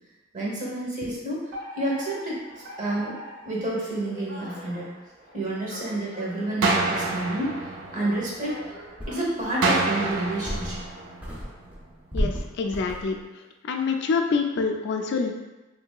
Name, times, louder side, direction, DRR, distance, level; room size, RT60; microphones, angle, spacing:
voice 1, 0.3-3.2 3.4-4.9 5.3-7.6 7.9-8.8 9.1-10.8, right 1 dB, 40° right, -4 dB, 0.8 m, -29 dB
Alarm, 1.5-10.1, equal, 90° right, 1.5 m, -43 dB
sound 1, 6.6-8.7 9.6-11.7, right 3 dB, 70° right, 0.4 m, -27 dB
sound 2, 8.3-8.4 9.0-9.5 10.1-10.9 11.2-13.2, equal, 10° right, 0.5 m, -32 dB
voice 2, 12.1-13.2 13.6-15.3, left 4 dB, 60° left, 4 dB, 0.3 m, -26 dB
3.2 x 2.8 x 2.2 m, 1.1 s
head